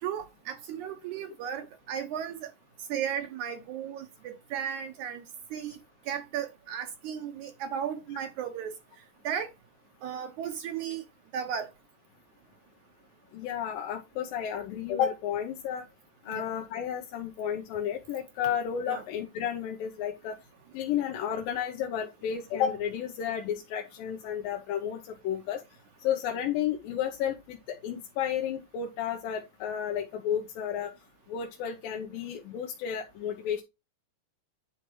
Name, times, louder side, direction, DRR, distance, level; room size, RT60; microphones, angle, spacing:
voice 1, 0.0-2.5 2.9-5.2 5.5-5.8 6.1-8.7 9.2-9.5 10.0-11.0 11.3-11.7 16.3-16.5 18.9-19.0, right 8 dB, 70° right, 2.0 m, -35 dB
voice 2, 13.3-15.9 16.3-20.4 20.7-25.0 25.2-25.6 26.0-30.9 31.3-33.6, left 9 dB, 85° left, 2.6 m, -32 dB
10.5 x 4.5 x 3.1 m
omnidirectional pair, 4.0 m